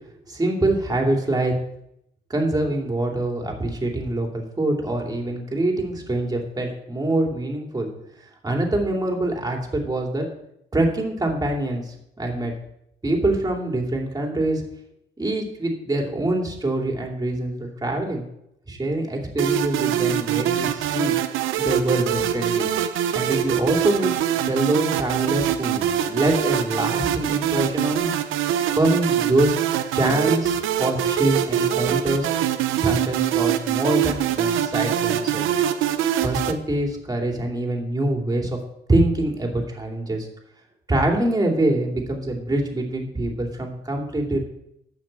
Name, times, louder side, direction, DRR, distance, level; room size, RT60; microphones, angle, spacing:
voice 1, 0.3-1.5 2.3-7.9 8.4-10.2 10.7-12.5 13.0-14.6 15.2-18.2 18.7-21.1 21.6-22.7 23.1-24.1 24.5-28.1 28.7-29.5 29.9-32.3 32.8-35.4 36.2-38.6 38.9-40.3 40.9-44.4, right 1 dB, 20° right, 1 dB, 2.9 m, -24 dB
sound 1, 19.4-36.5, right 10 dB, 90° right, 0.7 m, -24 dB
9.6 x 5.9 x 7.6 m, 0.78 s
cardioid pair, 90°, 20 cm